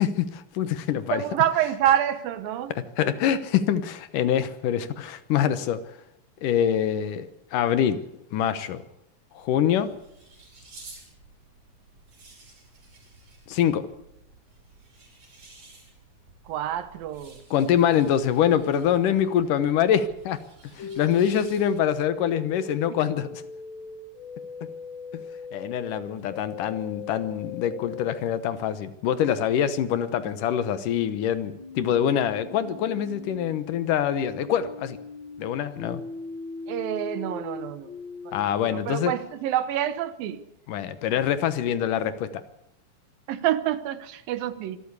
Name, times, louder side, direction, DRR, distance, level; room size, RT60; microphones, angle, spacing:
voice 1, 0.0-1.2 2.7-5.8 6.4-8.0 8.3-8.8 9.4-9.9 13.5-13.9 17.5-20.4 20.8-23.4 25.1-25.2 25.5-35.0 35.4-36.0 38.3-39.1 40.7-42.4, left 9 dB, 70° left, 2.5 m, -25 dB
voice 2, 1.1-2.7 16.5-17.4 36.7-37.9 38.3-38.4 38.7-40.4 43.3-44.8, right 11 dB, 80° right, 2.9 m, -27 dB
sound 1, 9.3-22.0, right 3 dB, 55° right, 7.5 m, -52 dB
sound 2, 20.8-28.2 31.5-38.4, left 4 dB, 45° left, 1.6 m, -39 dB
24.5 x 13.5 x 8.2 m
omnidirectional pair, 4.1 m